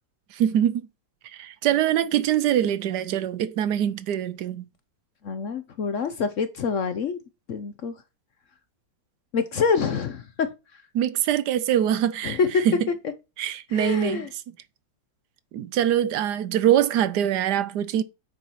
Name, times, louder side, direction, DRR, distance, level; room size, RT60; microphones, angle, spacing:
voice 1, 0.3-0.9 1.3-4.7 10.9-12.4 12.6-12.9 13.4-14.3 15.5-18.0, right 10 dB, 70° right, 1.2 m, -23 dB
voice 2, 5.2-7.2 7.5-7.9 9.3-10.5 12.2-12.7 13.7-14.3, left 5 dB, 60° left, 0.9 m, -26 dB
9.2 x 4.5 x 5.6 m
omnidirectional pair, 2.0 m